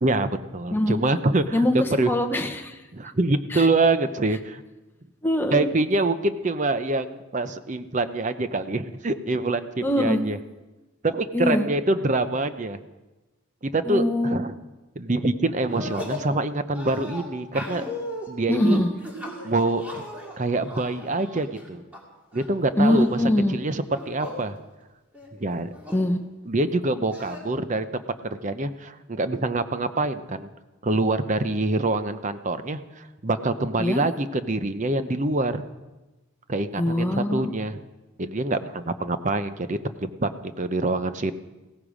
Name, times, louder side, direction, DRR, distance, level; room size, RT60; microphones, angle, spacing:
voice 1, 0.0-2.1 2.9-4.6 5.5-10.4 11.0-12.8 13.6-14.5 15.0-17.8 18.3-18.8 19.4-20.0 20.4-21.8 22.3-23.2 23.5-24.6 25.4-25.7 26.5-30.5 30.8-35.6 36.5-37.8 38.2-40.3 40.6-41.3, right 2 dB, 35° right, 11 dB, 0.7 m, -25 dB
voice 2, 0.7-1.0 1.5-2.8 3.5-3.7 5.2-5.7 9.8-10.2 11.3-11.7 13.9-14.4 18.5-18.9 22.8-23.5 25.9-26.2 33.8-34.0 36.8-37.5, left 1 dB, 10° left, 4 dB, 1.0 m, -23 dB
sound 1, 15.6-16.3 16.7-22.0 22.3-23.2 23.8-24.4 24.8-24.9 25.1-26.1 27.1-27.4, left 1 dB, 5° right, 2.6 m, -37 dB
16.5 x 14.5 x 5.0 m, 1.1 s
head